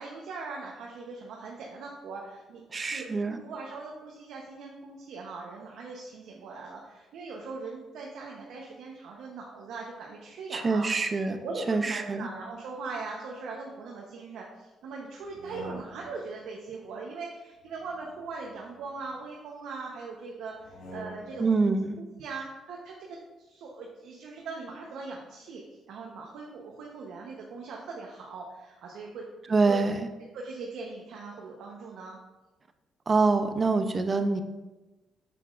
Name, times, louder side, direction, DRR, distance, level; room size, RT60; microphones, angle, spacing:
voice 1, 0.0-10.9 11.4-21.5 22.0-23.2 23.5-29.8 30.3-32.2, right 4 dB, 80° right, -2 dB, 0.9 m, -40 dB
voice 2, 2.7-3.4 10.5-11.4 11.7-12.3 21.4-22.0 29.5-30.1 33.1-34.4, right 3 dB, 35° right, 8 dB, 0.6 m, -25 dB
sound 1, 15.2-16.3 17.6-19.2 20.5-21.6, right 1 dB, 70° left, 1.8 m, -46 dB
7.1 x 6.9 x 2.5 m, 1.1 s
cardioid pair, 90°, 0 cm